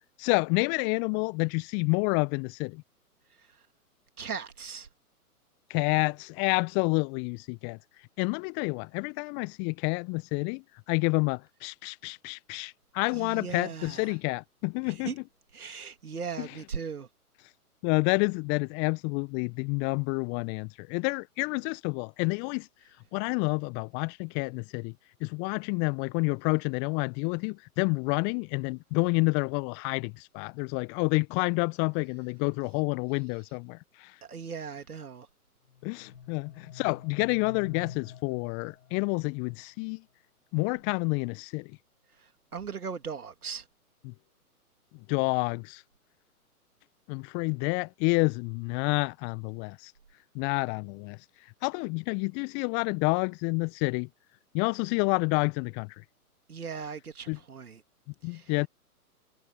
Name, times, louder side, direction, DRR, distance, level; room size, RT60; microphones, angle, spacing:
voice 1, 0.2-2.8 5.7-7.8 8.2-10.6 10.9-15.1 16.4-16.5 17.8-22.7 23.1-24.9 25.2-34.1 35.8-40.0 40.5-41.7 44.0-44.1 45.1-45.8 47.1-49.9 50.3-51.2 51.6-54.1 54.5-55.9 57.3-57.4 58.2-58.7, left 33 dB, 25° left, 1.2 m, -29 dB
voice 2, 4.2-4.9 13.1-14.1 14.9-15.1 15.5-17.1 34.3-35.3 42.2-43.6 56.5-57.8 58.3-58.5, right 6 dB, 70° right, 3.2 m, -38 dB
sound 1, 35.7-39.7, left 8 dB, 60° left, 7.1 m, -47 dB
figure-of-eight pair, 120°, 46 cm